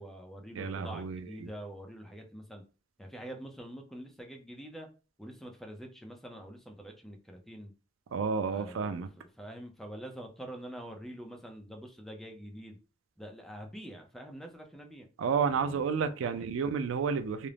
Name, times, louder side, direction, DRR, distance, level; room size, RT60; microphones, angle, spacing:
voice 1, 0.0-2.6 3.0-4.9 5.2-7.7 8.5-12.8 13.2-15.1 15.5-16.5, right 1 dB, ahead, 0.4 m, -46 dB
voice 2, 0.6-1.5 8.1-9.1 15.2-17.5, right 6 dB, 85° right, 0.3 m, -31 dB
2.4 x 2.0 x 3.2 m
head